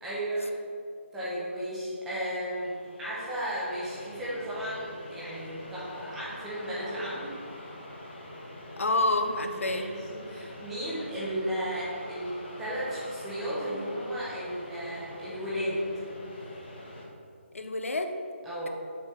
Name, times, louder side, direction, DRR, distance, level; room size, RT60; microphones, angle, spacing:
voice 1, 0.0-0.6 1.1-7.3 9.6-15.9 18.4-18.7, equal, 5° right, -9 dB, 0.5 m, -34 dB
sound 1, 2.2-17.1, left 1 dB, 45° left, 1.4 m, -45 dB
voice 2, 8.8-9.9 17.5-18.2, left 2 dB, 85° left, 6 dB, 0.6 m, -28 dB
7.0 x 3.2 x 5.9 m, 2.3 s
hypercardioid pair, 175°, 7 cm